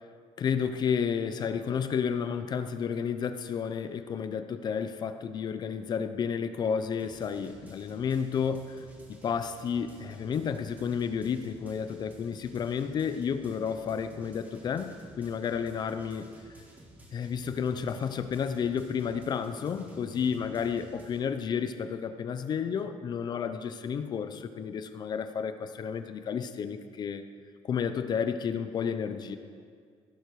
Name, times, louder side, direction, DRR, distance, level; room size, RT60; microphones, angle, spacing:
voice 1, 0.4-8.8 9.2-16.3 17.1-27.2 27.6-29.4, left 7 dB, 40° left, 10 dB, 0.6 m, -31 dB
sound 1, 7.0-21.2, right 1 dB, 15° right, 1.8 m, -53 dB
17.0 x 11.5 x 4.7 m, 2.1 s
cardioid pair, 180°, 11 cm